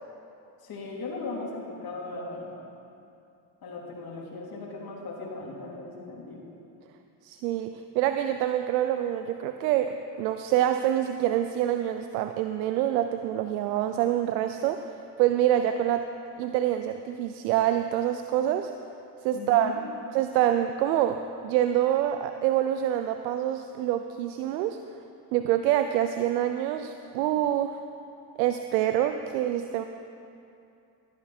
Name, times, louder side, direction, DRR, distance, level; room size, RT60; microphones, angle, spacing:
voice 1, 0.6-2.5 3.6-6.4 19.3-19.8, left 3 dB, 45° left, -3 dB, 3.3 m, -38 dB
voice 2, 7.2-16.1 16.4-18.7 19.2-24.8 25.3-27.8 28.4-29.8, right 11 dB, 90° right, 8 dB, 0.6 m, -26 dB
12.5 x 12.0 x 4.4 m, 2.6 s
supercardioid pair, 75°, 50 cm